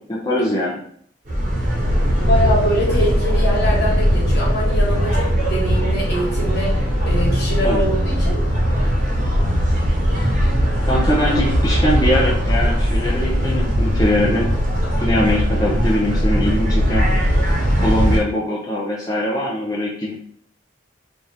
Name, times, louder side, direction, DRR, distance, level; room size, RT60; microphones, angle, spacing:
voice 1, 0.1-0.8 7.6-7.8 10.8-14.5 15.0-17.1 17.8-20.1, left 1 dB, 20° left, -5 dB, 0.6 m, -21 dB
sound 1, 1.3-18.2, equal, 40° right, 0.9 m, -19 dB
voice 2, 2.2-6.7 7.1-8.4, equal, 55° left, -4 dB, 1.7 m, -23 dB
4.4 x 2.5 x 3.4 m, 0.63 s
head